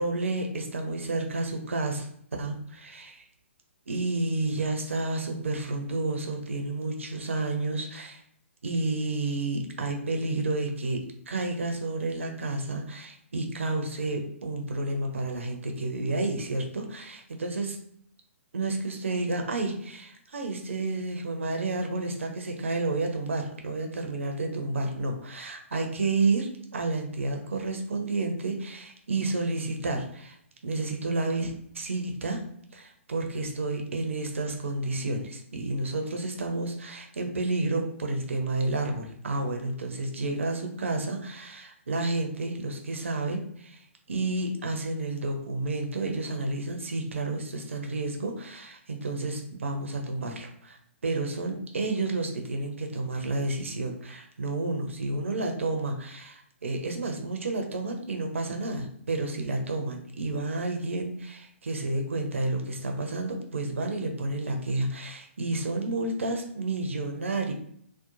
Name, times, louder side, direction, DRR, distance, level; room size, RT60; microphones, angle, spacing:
voice 1, 0.0-2.1 2.4-3.2 3.9-8.2 8.6-17.8 18.5-30.4 30.6-32.4 32.7-67.5, right 2 dB, 65° right, 3 dB, 0.6 m, -30 dB
2.8 x 2.1 x 2.5 m, 0.68 s
figure-of-eight pair, 125°, 7 cm